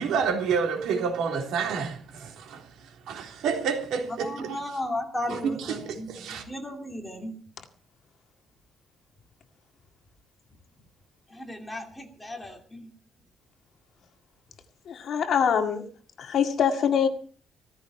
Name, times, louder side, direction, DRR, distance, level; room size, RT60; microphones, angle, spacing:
voice 1, 0.0-4.6 5.3-6.4, right 6 dB, 80° right, 3.5 m, -29 dB
voice 2, 4.2-7.4 11.3-12.9, left 1 dB, 5° left, 2.8 m, -35 dB
voice 3, 14.9-15.8 16.2-17.1, left 7 dB, 50° left, 2.0 m, -24 dB
16.0 x 14.5 x 4.4 m
cardioid pair, 180°, 0 cm